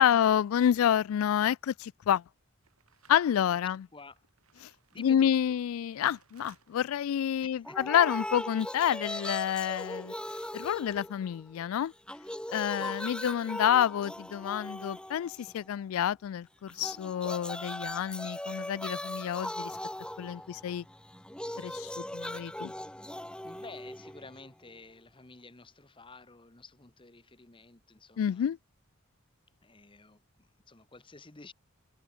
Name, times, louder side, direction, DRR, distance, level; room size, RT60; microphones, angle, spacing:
voice 1, 0.0-2.2 3.1-3.8 5.0-10.1 10.5-11.9 12.5-19.7 20.2-20.8 21.6-22.7 28.2-28.6, left 9 dB, 70° left, 0.3 m, -28 dB
sound 1, 2.6-9.4, right 6 dB, 90° right, 4.5 m, -65 dB
voice 2, 3.9-4.3 4.9-5.6 7.4-7.9 12.6-13.0 20.0-20.6 23.4-28.5 29.6-31.5, left 3 dB, 25° left, 1.3 m, -52 dB
sound 2, 7.7-11.6 11.9-15.7 16.7-24.7, left 1 dB, 5° left, 1.4 m, -39 dB
head